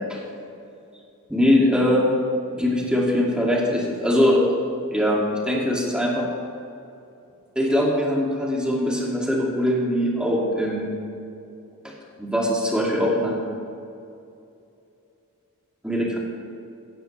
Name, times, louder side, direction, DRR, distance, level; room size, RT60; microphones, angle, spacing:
voice 1, 1.3-2.1 2.6-4.5 4.9-6.3 7.6-10.9 11.8-11.9 12.2-13.4 15.8-16.2, left 1 dB, 5° right, -3 dB, 2.5 m, -22 dB
16.0 x 15.5 x 3.4 m, 2.6 s
head